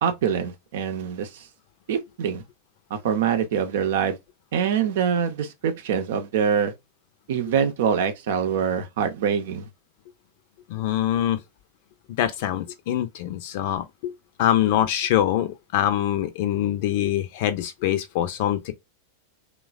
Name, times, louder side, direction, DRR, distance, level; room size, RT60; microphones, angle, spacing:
voice 1, 0.0-1.5 1.9-2.4 2.9-4.2 4.5-6.7 7.3-9.7, right 7 dB, 60° right, 0.6 m, -24 dB
voice 2, 10.7-11.4 12.2-14.1 14.4-18.7, left 12 dB, 55° left, 0.5 m, -24 dB
3.1 x 2.2 x 2.3 m
figure-of-eight pair, 90°, 0 cm